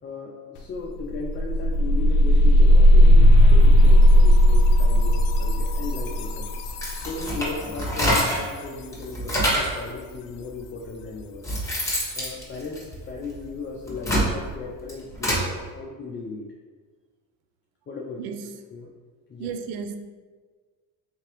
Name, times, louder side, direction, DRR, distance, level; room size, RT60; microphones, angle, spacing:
voice 1, 0.0-6.5 7.0-11.5 12.2-16.5 17.9-18.9 19.3-19.5, left 4 dB, 25° left, -2 dB, 0.4 m, -36 dB
sound 1, 0.6-0.7 1.0-7.8, equal, 75° left, 0.6 m, -16 dB
sound 2, 6.7-8.5 8.9-9.8 10.6-10.7 11.2-13.3 13.8-15.5, equal, 5° left, 1.3 m, -26 dB
voice 2, 18.2-18.5 19.4-20.0, right 6 dB, 75° right, 7 dB, 0.5 m, -34 dB
3.6 x 2.9 x 3.0 m, 1.5 s
supercardioid pair, 70°, 48 cm